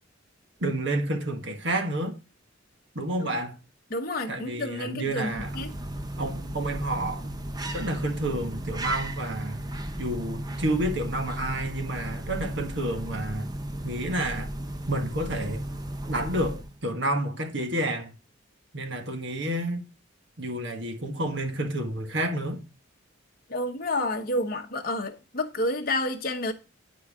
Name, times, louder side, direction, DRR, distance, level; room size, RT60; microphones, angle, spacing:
voice 1, 0.6-2.2 2.9-3.6 4.3-5.6 6.2-7.3 7.7-9.7 10.0-13.5 13.8-14.5 14.9-15.6 16.1-18.1 18.7-19.8 20.4-22.7, right 1 dB, 60° right, 1.5 m, -30 dB
voice 2, 3.9-5.7 23.5-26.5, left 1 dB, 45° left, 1.0 m, -29 dB
sound 1, 5.1-16.9, right 1 dB, 20° right, 0.6 m, -35 dB
10.0 x 4.6 x 3.5 m
head